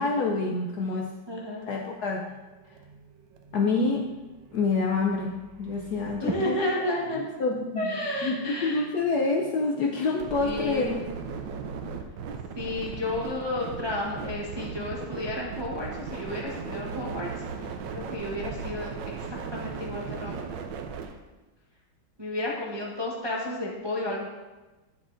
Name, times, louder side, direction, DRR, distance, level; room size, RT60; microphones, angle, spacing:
voice 1, 0.0-1.1 1.7-2.2 3.5-4.0 4.5-6.6 6.9-7.9 8.2-11.0, left 3 dB, 70° left, 0 dB, 0.9 m, -27 dB
voice 2, 1.3-1.7 6.2-7.2 7.8-8.8 10.4-10.9 12.6-17.3 17.6-18.9 19.2-19.3 19.5-20.4 22.2-24.3, left 1 dB, 35° right, -4 dB, 0.4 m, -32 dB
sound 1, 2.3-21.2, right 5 dB, 70° right, 1.2 m, -39 dB
9.4 x 7.3 x 2.6 m, 1.2 s
omnidirectional pair, 2.3 m